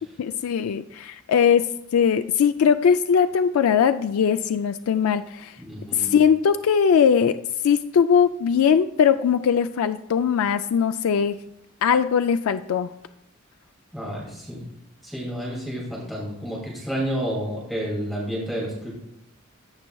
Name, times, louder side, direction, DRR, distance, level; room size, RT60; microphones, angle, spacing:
voice 1, 0.2-1.7 1.9-5.6 5.9-7.4 7.6-11.4 11.8-12.9, left 7 dB, 85° left, 10 dB, 0.3 m, -20 dB
voice 2, 5.6-6.1 13.9-14.6 15.0-18.9, equal, ahead, -5 dB, 2.4 m, -30 dB
16.5 x 5.6 x 2.3 m, 0.83 s
head